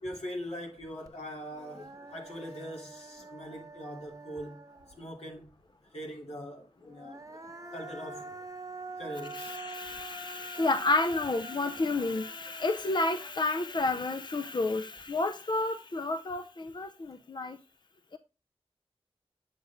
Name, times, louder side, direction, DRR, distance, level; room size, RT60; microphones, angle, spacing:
voice 1, 0.0-4.6 5.0-5.5 5.9-7.2 7.7-8.4 9.0-9.6 13.8-13.9, equal, 85° left, 2.7 m, -42 dB
Human voice, 1.1-1.2 1.5-5.2 6.8-14.1, right 2 dB, 35° right, 1.0 m, -46 dB
voice 2, 9.3-17.6 18.1-18.2, left 2 dB, 45° left, 0.5 m, -30 dB
8.6 x 6.4 x 3.5 m
wide cardioid pair, 55°, 11 cm